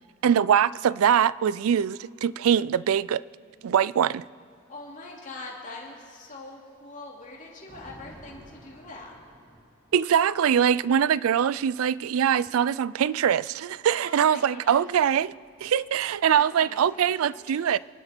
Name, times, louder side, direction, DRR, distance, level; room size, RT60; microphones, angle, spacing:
voice 1, 0.2-3.2 3.6-4.2 9.9-15.3 15.6-17.8, right 8 dB, 75° right, 0.3 m, -23 dB
voice 2, 4.7-9.1 14.0-14.9 16.3-17.7, left 2 dB, 35° left, 2.9 m, -43 dB
Thunder, 6.5-13.7 14.7-16.5, equal, 20° right, 3.8 m, -55 dB
26.5 x 12.0 x 4.4 m
head